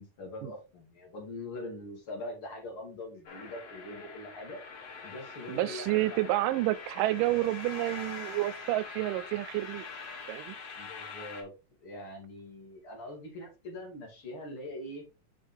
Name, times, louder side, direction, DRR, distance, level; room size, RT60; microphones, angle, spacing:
voice 1, 0.0-4.6 5.0-6.2 10.8-11.5 11.8-15.0, left 1 dB, 45° left, 2.8 m, -43 dB
sound 1, 3.2-11.4, left 5 dB, 85° left, 0.8 m, -44 dB
voice 2, 5.5-9.8 10.3-10.6, right 17 dB, 90° right, 2.2 m, -29 dB
6.1 x 5.2 x 3.4 m
omnidirectional pair, 3.8 m